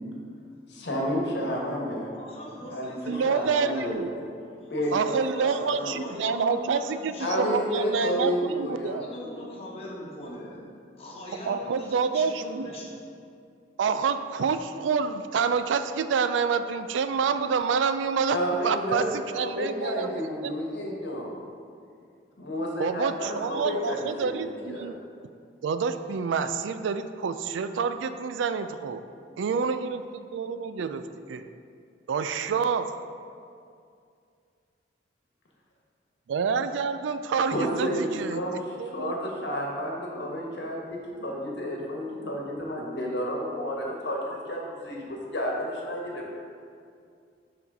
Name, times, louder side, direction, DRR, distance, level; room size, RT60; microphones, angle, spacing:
voice 1, 0.7-2.1 2.7-4.1 4.7-6.1 7.2-9.0 18.3-19.1 19.3-21.4 22.4-24.9 37.4-38.6 38.8-46.2, equal, 70° left, -2 dB, 1.2 m, -31 dB
voice 2, 2.1-3.9 4.6-8.1 9.0-10.6 11.0-12.9, equal, 30° left, -5 dB, 1.3 m, -41 dB
voice 3, 3.1-4.1 4.9-9.1 11.5-12.7 13.8-18.4 18.6-20.5 22.8-24.9 25.6-29.0 29.4-31.0 31.3-31.5 32.1-32.9 36.3-38.4 38.8-39.1, right 5 dB, 85° right, 10 dB, 0.3 m, -28 dB
6.0 x 4.3 x 5.2 m, 2.3 s
head